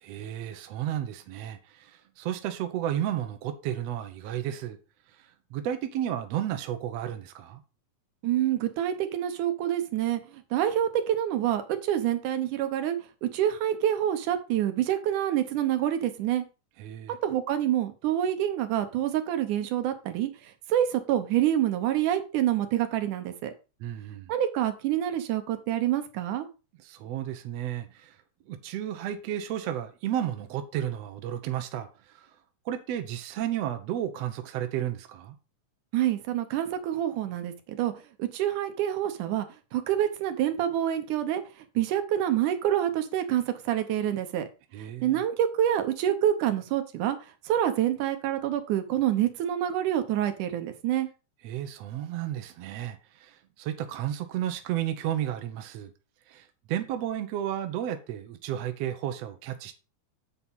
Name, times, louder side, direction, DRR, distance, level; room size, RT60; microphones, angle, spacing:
voice 1, 0.0-4.8 5.5-7.6 16.8-17.2 23.8-24.3 26.8-28.2 28.5-32.3 32.7-35.4 44.7-45.2 51.4-55.9 56.3-59.7, right 11 dB, 65° right, 1.9 m, -33 dB
voice 2, 8.2-10.2 10.5-16.5 17.1-20.3 20.7-23.5 24.3-26.5 35.9-37.9 38.2-39.5 39.7-41.4 41.8-44.4 45.0-47.2 47.5-51.1, right 11 dB, 80° right, 2.5 m, -27 dB
8.2 x 4.5 x 5.4 m
omnidirectional pair, 3.5 m